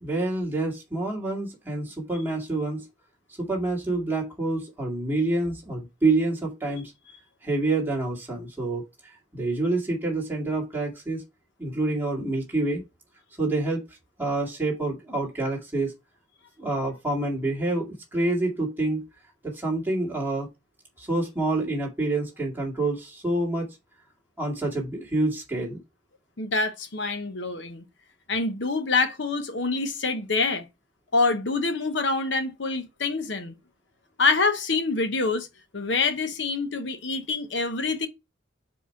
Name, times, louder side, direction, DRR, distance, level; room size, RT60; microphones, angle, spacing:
voice 1, 0.0-2.9 3.4-6.9 7.4-8.8 9.3-11.2 11.6-12.8 13.4-13.9 14.2-15.9 16.6-19.1 19.4-20.5 21.0-23.7 24.4-25.8, right 2 dB, 10° right, 2.0 m, -27 dB
voice 2, 26.4-27.8 28.3-30.6 31.1-33.5 34.2-35.5 35.7-38.1, left 3 dB, 75° left, 1.0 m, -26 dB
5.0 x 4.3 x 4.5 m
head